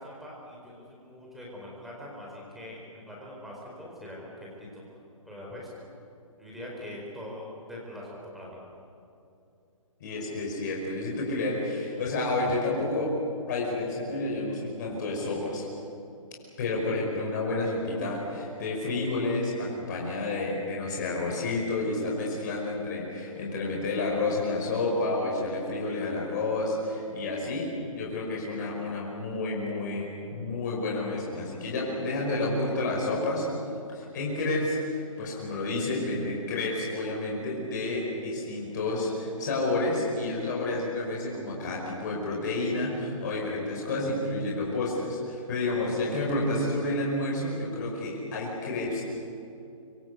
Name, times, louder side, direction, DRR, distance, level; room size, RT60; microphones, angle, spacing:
voice 1, 0.0-4.8 5.2-5.9 6.4-8.6, left 1 dB, ahead, -4 dB, 4.3 m, -43 dB
voice 2, 10.0-13.2 13.5-15.6 16.6-30.0 30.3-33.5 33.9-49.0, left 2 dB, 30° left, -3 dB, 5.5 m, -30 dB
25.5 x 23.5 x 8.3 m, 2.7 s
hypercardioid pair, 175°, 18 cm